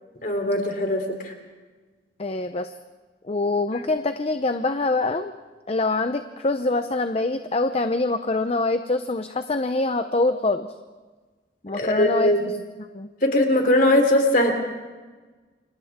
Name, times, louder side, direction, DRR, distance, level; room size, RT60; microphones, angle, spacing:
voice 1, 0.2-1.3 11.7-12.5 13.2-14.5, left 1 dB, 50° left, 3 dB, 3.5 m, -20 dB
voice 2, 2.2-2.7 3.2-5.3 5.7-10.7 11.6-12.5 12.9-13.1, left 2 dB, 35° left, 9 dB, 0.7 m, -24 dB
29.0 x 25.0 x 3.7 m, 1.3 s
head